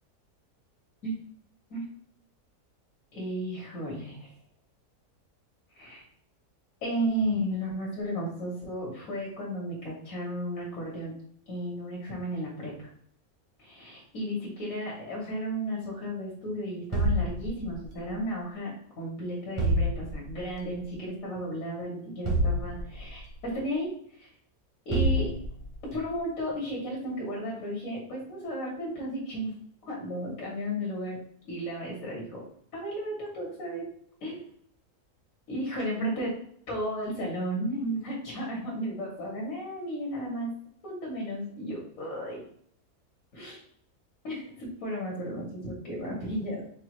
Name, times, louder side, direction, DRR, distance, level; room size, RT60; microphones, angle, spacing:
voice 1, 3.1-4.3 5.7-6.0 6.8-11.1 11.5-12.9 13.6-23.3 23.5-23.9 24.2-24.3 24.8-25.3 25.9-29.6 29.9-31.2 31.4-32.4 32.7-33.9 34.2-34.4 35.5-36.3 36.7-40.5 40.8-42.4 43.3-43.6 44.2-46.6, equal, 60° left, -4 dB, 1.6 m, -34 dB
sound 1, 16.9-18.0 19.6-20.5 22.2-23.3 24.9-25.9, equal, 30° right, 0.6 m, -28 dB
4.7 x 2.4 x 2.9 m, 0.62 s
omnidirectional pair, 1.6 m